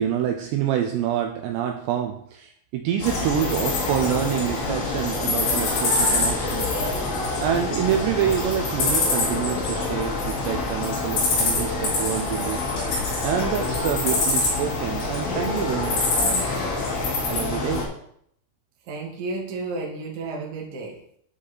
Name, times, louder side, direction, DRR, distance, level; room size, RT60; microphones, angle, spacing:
voice 1, 0.0-6.7 7.4-12.6 13.2-16.9 17.3-17.9, right 10 dB, 85° right, 4 dB, 2.5 m, -27 dB
sound 1, 3.0-17.8, left 3 dB, 60° left, 3.6 m, -25 dB
voice 2, 18.8-21.0, right 3 dB, 65° right, -1 dB, 1.4 m, -32 dB
11.5 x 5.3 x 4.2 m, 0.69 s
omnidirectional pair, 5.5 m